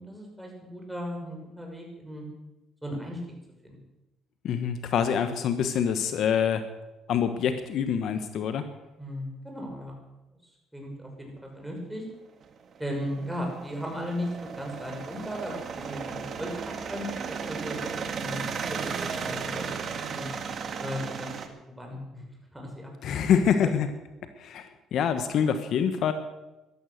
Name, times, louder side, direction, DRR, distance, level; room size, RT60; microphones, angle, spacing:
voice 1, 0.0-2.3 2.8-3.2 3.6-3.8 9.0-10.0 10.7-12.0 12.8-16.6 16.9-19.7 20.0-20.3 20.8-21.3 21.8-22.2 22.5-23.3 23.6-23.8, equal, 5° right, 0 dB, 6.0 m, -36 dB
voice 2, 4.4-6.7 7.1-8.7 23.0-23.9 24.4-26.1, left 8 dB, 65° left, 9 dB, 1.2 m, -25 dB
sound 1, 12.4-21.5, right 6 dB, 50° right, 1.8 m, -35 dB
15.0 x 12.0 x 6.6 m, 1.0 s
cardioid pair, 90°, 0 cm